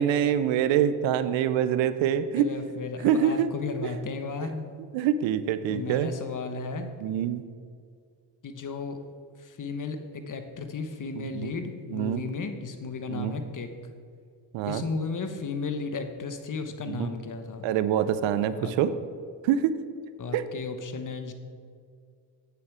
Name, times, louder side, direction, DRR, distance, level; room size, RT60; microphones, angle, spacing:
voice 1, 0.0-2.4 3.0-3.5 4.9-6.1 7.0-7.4 11.2-11.5 11.9-12.2 13.1-13.4 14.5-14.8 16.9-17.1 17.6-18.9 19.4-19.8 20.3-20.4, right 9 dB, 90° right, 13 dB, 0.6 m, -25 dB
voice 2, 2.3-4.7 5.7-6.9 8.4-9.0 9.4-13.7 14.6-17.7 18.5-18.7 20.2-21.3, left 4 dB, 45° left, 7 dB, 1.1 m, -34 dB
8.7 x 7.0 x 4.7 m, 2.2 s
cardioid pair, 70°, 44 cm